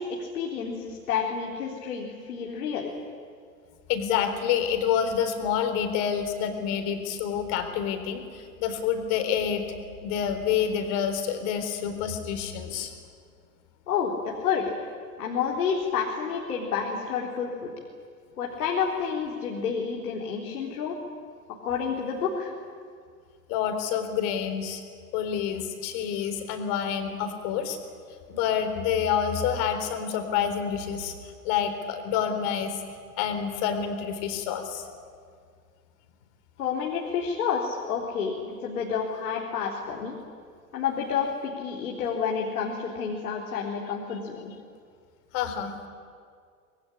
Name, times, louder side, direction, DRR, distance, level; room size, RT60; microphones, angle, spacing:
voice 1, 0.0-2.9 13.9-14.7 15.2-17.7 18.4-21.0 21.6-22.5 36.6-40.2 40.7-44.5, left 6 dB, 70° left, -1 dB, 3.8 m, -29 dB
voice 2, 3.9-9.7 10.0-12.9 23.5-24.8 25.1-27.8 28.3-32.8 33.2-34.9 45.3-45.9, left 8 dB, 50° left, 7 dB, 4.1 m, -28 dB
25.0 x 21.5 x 9.9 m, 2.1 s
figure-of-eight pair, 85°, 46 cm